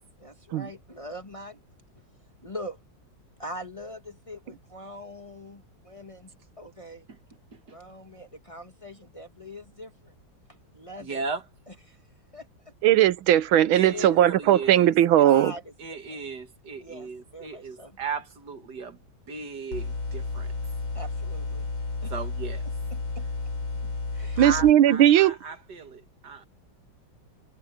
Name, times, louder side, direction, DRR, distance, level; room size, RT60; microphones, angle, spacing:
voice 1, 0.2-1.6 2.4-2.8 3.4-6.3 6.6-7.0 7.7-10.1 10.7-11.2 11.9-12.0 12.3-12.5 13.8-14.2 15.0-16.2 16.8-17.9 20.9-21.7 22.0-22.1 22.9-23.3 23.8-24.5, equal, 20° left, 1.5 m, -42 dB
voice 2, 11.0-11.5 13.7-14.9 15.8-19.0 19.3-20.5 22.1-22.6 24.4-26.4, right 5 dB, 60° right, 2.4 m, -36 dB
voice 3, 12.8-15.5 24.4-25.4, right 11 dB, 90° right, 1.7 m, -18 dB
sound 1, 19.7-24.7, left 3 dB, 85° left, 4.8 m, -32 dB
omnidirectional pair, 2.1 m